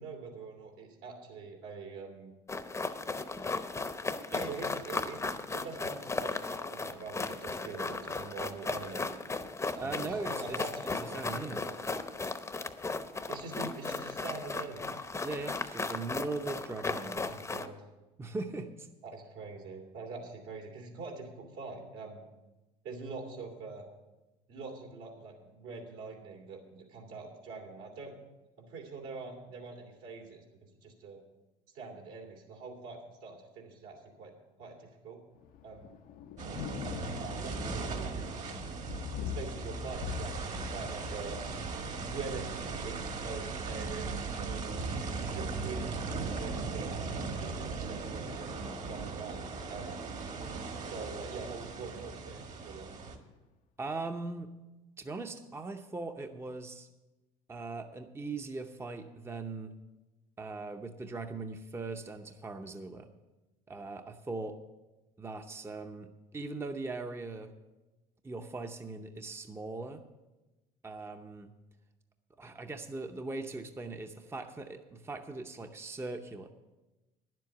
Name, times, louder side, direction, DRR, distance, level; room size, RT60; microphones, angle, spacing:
voice 1, 0.0-2.3 4.3-5.2 5.5-9.1 9.7-11.8 13.3-14.9 17.1-17.8 19.0-22.3 22.8-23.9 24.5-28.1 28.6-31.2 31.7-34.3 34.6-35.2 35.6-36.0 37.2-38.6 39.2-41.4 42.0-44.9 45.3-46.9 47.3-50.1 50.8-52.9, right 4 dB, 75° right, 0 dB, 2.8 m, -44 dB
sound 1, 2.5-17.7, left 3 dB, 15° left, 0.8 m, -36 dB
voice 2, 9.8-10.7 11.0-11.7 15.2-17.3 18.2-18.9 53.8-54.5 55.0-56.9 57.5-59.8 60.4-63.1 63.7-64.6 65.2-67.5 68.2-70.0 70.8-71.5 72.4-76.5, right 3 dB, 15° right, 6 dB, 0.7 m, -40 dB
Thunder, 35.4-53.3, left 9 dB, 60° left, 0.6 m, -46 dB
sound 2, 36.4-53.2, right 4 dB, 45° right, 1.7 m, -38 dB
10.5 x 7.7 x 7.2 m, 1.1 s
supercardioid pair, 85°, 17 cm